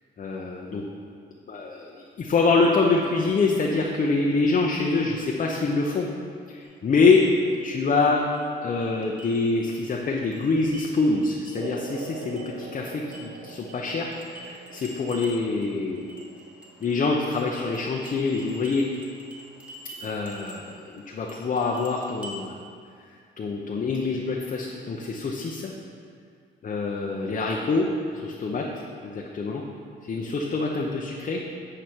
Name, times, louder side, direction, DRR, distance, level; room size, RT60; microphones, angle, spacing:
voice 1, 0.2-0.8 1.5-6.1 6.5-7.2 7.6-8.2 8.6-16.1 16.8-18.9 20.0-22.6 23.0-25.7 26.6-27.9 28.1-29.6 30.0-31.4, left 3 dB, 40° left, -1 dB, 0.7 m, -25 dB
sound 1, 6.6-22.5, equal, 5° right, 1.5 m, -48 dB
sound 2, 11.6-18.6, right 5 dB, 70° right, 0.5 m, -44 dB
8.3 x 5.0 x 4.4 m, 2.2 s
cardioid pair, 90°, 20 cm